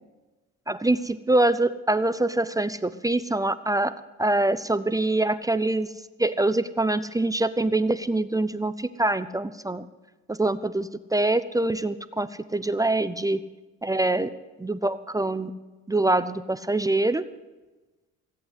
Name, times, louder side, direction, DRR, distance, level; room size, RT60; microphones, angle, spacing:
voice 1, 0.7-3.9 4.2-5.9 6.2-9.9 10.3-13.4 13.8-14.3 14.6-15.5 15.9-17.2, right 2 dB, 10° right, 12 dB, 0.5 m, -24 dB
17.0 x 8.1 x 8.1 m, 1.2 s
cardioid pair, 110°, 30 cm